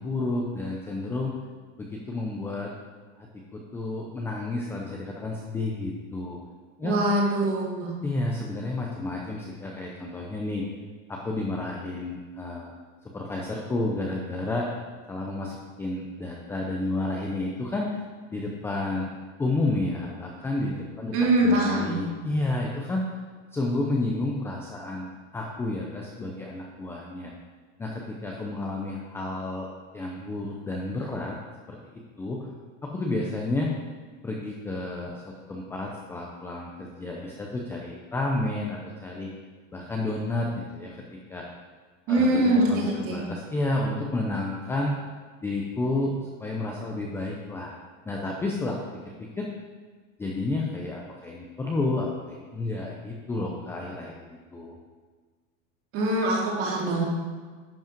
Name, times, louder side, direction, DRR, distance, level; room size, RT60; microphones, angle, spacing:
voice 1, 0.0-1.3 1.8-2.7 3.2-6.4 6.8-7.0 8.0-10.7 11.1-12.7 13.1-14.7 15.1-18.0 18.3-19.1 19.4-23.1 23.5-27.3 27.8-29.7 29.9-31.4 31.7-32.5 32.8-33.8 34.2-39.3 39.7-41.4 42.1-44.9 45.4-46.1 46.4-47.7 48.1-49.5 50.2-54.2 54.5-54.8, left 2 dB, 5° left, -1 dB, 0.5 m, -31 dB
voice 2, 6.8-8.0 21.1-22.0 42.1-43.2 55.9-57.0, right 1 dB, 35° right, -2 dB, 2.3 m, -23 dB
11.0 x 5.3 x 5.2 m, 1.5 s
supercardioid pair, 155°, 38 cm